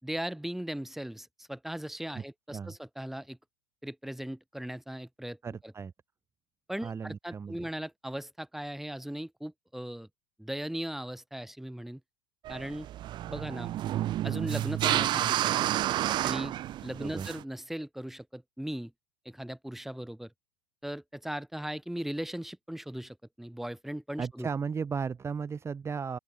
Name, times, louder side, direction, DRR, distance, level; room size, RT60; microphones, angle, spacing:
voice 1, 0.0-3.4 3.8-5.4 5.6-5.7 6.7-10.1 10.4-12.0 12.5-12.9 13.3-13.7 14.2-15.7 16.2-16.5 16.8-18.9 19.2-20.3 20.8-24.5, right 1 dB, ahead, 5.0 m, -38 dB
voice 2, 5.4-5.9 6.8-7.7 17.0-17.3 24.2-26.2, right 6 dB, 25° right, 3.8 m, -35 dB
sound 1, 12.5-17.4, right 13 dB, 40° right, 1.2 m, -30 dB
open air
hypercardioid pair, 85°, 12 cm